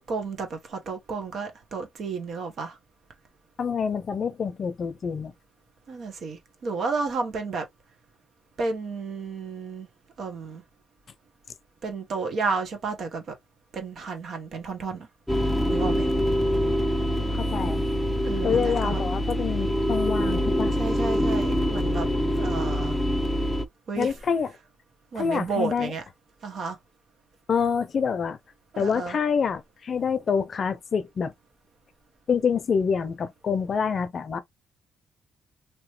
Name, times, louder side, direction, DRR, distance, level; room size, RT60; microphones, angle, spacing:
voice 1, 0.0-2.8 5.9-7.6 8.6-9.9 10.2-10.6 11.8-13.3 13.7-15.1 15.7-16.1 18.2-19.0 20.7-22.1 22.4-23.0 23.9-24.1 25.1-26.0 26.4-26.8 28.7-29.2, right 4 dB, 60° right, 1.2 m, -32 dB
voice 2, 3.6-5.3 17.4-17.8 18.4-20.8 24.0-24.5 25.1-25.9 27.5-28.4 28.8-31.3 32.3-34.4, left 6 dB, 50° left, 0.6 m, -26 dB
sound 1, 15.3-23.6, equal, 5° left, 0.5 m, -25 dB
3.1 x 3.0 x 3.1 m
cardioid pair, 90°, 0 cm